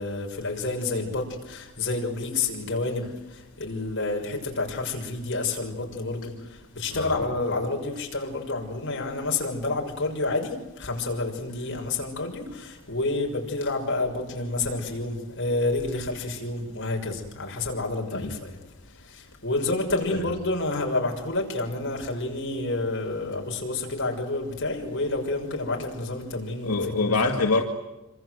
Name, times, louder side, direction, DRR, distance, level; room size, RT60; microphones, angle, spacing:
voice 1, 0.0-18.6 18.9-27.2, left 2 dB, 55° left, 6.2 m, -29 dB
voice 2, 26.7-27.6, left 3 dB, 85° left, 2.3 m, -24 dB
27.0 x 26.0 x 7.9 m
head